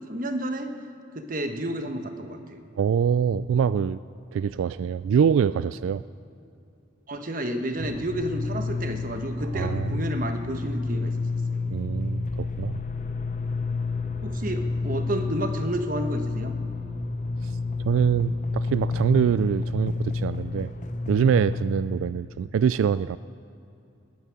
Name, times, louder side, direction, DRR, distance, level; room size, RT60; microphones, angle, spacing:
voice 1, 0.1-0.7 1.1-2.6 7.1-11.1 11.5-11.6 14.2-16.5, right 1 dB, 45° right, 6 dB, 1.1 m, -31 dB
voice 2, 2.8-4.0 4.3-6.0 9.5-10.0 11.7-12.8 17.4-17.5 17.8-20.7 21.1-23.2, right 7 dB, 85° right, 16 dB, 0.3 m, -24 dB
sound 1, 7.8-21.6, left 3 dB, 40° left, 0.6 m, -30 dB
14.0 x 9.3 x 9.9 m, 2.7 s
head